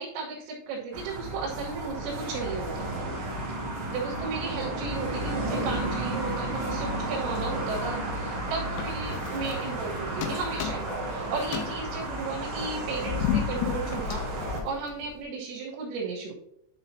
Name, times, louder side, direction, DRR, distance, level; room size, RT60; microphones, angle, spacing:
voice 1, 0.0-3.1 3.9-14.2 14.6-16.3, right 4 dB, 85° right, -5 dB, 3.9 m, -35 dB
sound 1, 0.9-14.6, right 1 dB, 65° right, 1.4 m, -33 dB
sound 2, 8.8-9.9 10.2-11.1 11.4-15.2, left 8 dB, 80° left, 2.5 m, -33 dB
10.5 x 5.7 x 2.8 m, 0.75 s
omnidirectional pair, 5.7 m